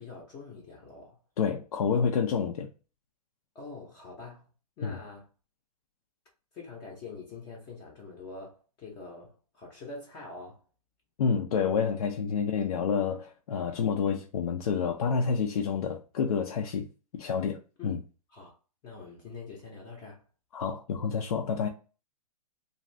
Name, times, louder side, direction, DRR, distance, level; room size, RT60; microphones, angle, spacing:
voice 1, 0.0-1.2 1.9-2.0 2.4-2.5 3.5-4.5 4.8-5.3 6.5-10.6 17.8-18.0 18.3-18.6 18.8-20.2, left 3 dB, 20° left, 0.6 m, -45 dB
voice 2, 1.4-2.7 4.8-5.0 11.2-16.9 17.1-18.0 20.5-21.7, left 6 dB, 75° left, 0.5 m, -28 dB
2.6 x 2.3 x 3.1 m
hypercardioid pair, 145°, 19 cm